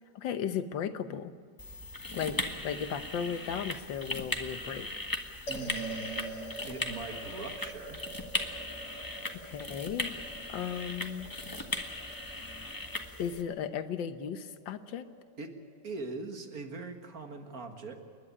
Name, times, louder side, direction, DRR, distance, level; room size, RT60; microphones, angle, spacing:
voice 1, 0.1-1.3 2.1-2.4 2.6-4.9 9.4-10.1 10.5-11.3 13.2-15.0, left 8 dB, 75° left, 10 dB, 1.7 m, -35 dB
sound 1, 1.6-13.4, left 2 dB, 10° left, 1.3 m, -38 dB
sound 2, 5.5-15.9, right 2 dB, 60° left, 2.7 m, -47 dB
voice 2, 5.5-8.1 15.4-15.6 15.8-18.0, right 3 dB, 50° right, 5 dB, 2.1 m, -41 dB
28.5 x 11.5 x 9.9 m, 2.2 s
omnidirectional pair, 2.0 m